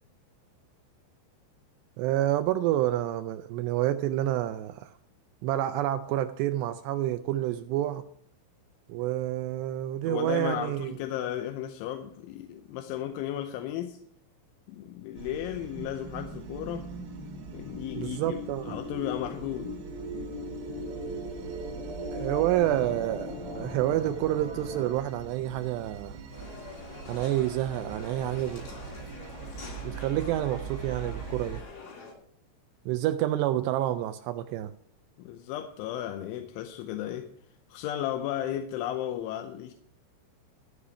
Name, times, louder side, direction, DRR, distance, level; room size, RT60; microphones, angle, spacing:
voice 1, 2.0-4.9 5.4-8.0 8.9-11.0 18.0-18.7 22.1-26.2 27.1-28.7 29.8-31.6 32.9-34.7, right 13 dB, 85° right, 2.4 m, -28 dB
voice 2, 10.0-14.0 14.7-16.9 17.5-18.4 18.6-19.8 35.2-37.3 37.7-39.7, left 11 dB, 85° left, 3.2 m, -34 dB
sound 1, 15.2-31.6, right 5 dB, 65° right, 3.1 m, -43 dB
sound 2, 15.6-24.9, left 1 dB, 30° right, 2.1 m, -39 dB
sound 3, 26.3-32.1, left 4 dB, 60° left, 4.6 m, -45 dB
14.0 x 4.9 x 8.5 m
omnidirectional pair, 5.4 m